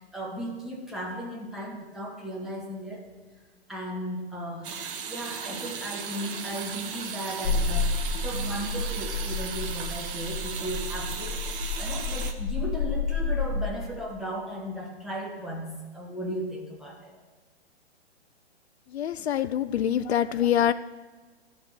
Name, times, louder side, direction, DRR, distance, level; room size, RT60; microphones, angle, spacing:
voice 1, 0.0-3.1 3.7-4.7 5.1-15.7 15.9-17.2, equal, ahead, -2 dB, 1.5 m, -36 dB
sound 1, 4.6-12.3, right 6 dB, 50° right, 1.1 m, -36 dB
sound 2, 7.4-13.6, left 4 dB, 25° left, 0.9 m, -30 dB
voice 2, 18.9-20.7, left 10 dB, 70° left, 13 dB, 0.5 m, -25 dB
12.5 x 4.2 x 6.2 m, 1.3 s
hypercardioid pair, 125°, 33 cm